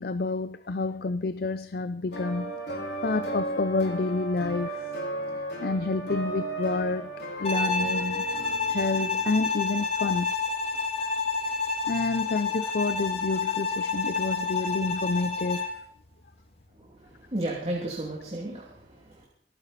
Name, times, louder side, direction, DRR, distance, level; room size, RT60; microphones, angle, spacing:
voice 1, 0.0-2.5 3.0-4.9 5.6-7.1 7.4-8.2 8.7-10.3 11.9-15.7, left 3 dB, 60° left, 0.6 m, -29 dB
sound 1, 2.1-9.7, right 1 dB, 85° left, 4.2 m, -35 dB
Bowed string instrument, 7.4-15.8, left 4 dB, 35° left, 2.1 m, -29 dB
voice 2, 17.3-19.2, right 1 dB, 35° right, 2.7 m, -33 dB
25.5 x 9.3 x 4.2 m
head